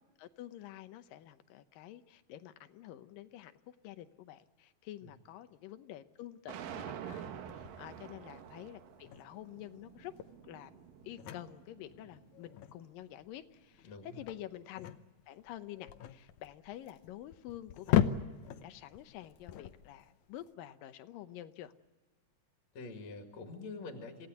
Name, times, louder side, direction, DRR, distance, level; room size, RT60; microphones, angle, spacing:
voice 1, 0.0-10.1 10.4-10.7 11.0-14.9 15.3-18.1 18.6-21.7, left 13 dB, 90° left, 11 dB, 2.6 m, -49 dB
sound 1, 6.5-12.6, right 9 dB, 85° right, 2.9 m, -48 dB
sound 2, 7.3-20.5, left 10 dB, 70° left, 2.1 m, -38 dB
voice 2, 13.8-14.2 22.7-24.3, left 3 dB, 55° left, 4 dB, 3.2 m, -46 dB
27.0 x 16.5 x 9.3 m, 1.3 s
omnidirectional pair, 3.9 m